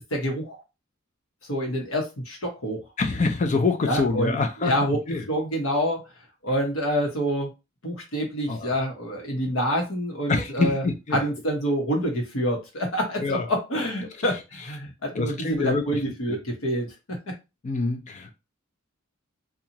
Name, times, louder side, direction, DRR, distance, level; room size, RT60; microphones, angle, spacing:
voice 1, 0.1-0.6 1.5-2.8 3.8-4.4 4.6-5.0 5.3-6.0 6.4-7.5 7.8-10.8 11.1-17.3, equal, 80° left, 1.0 m, -27 dB
voice 2, 3.0-4.7 5.1-5.2 8.5-8.7 10.3-11.2 13.2-13.5 15.1-16.0 16.3-16.4 17.6-18.4, left 3 dB, 35° left, 0.4 m, -25 dB
2.6 x 2.4 x 2.9 m
head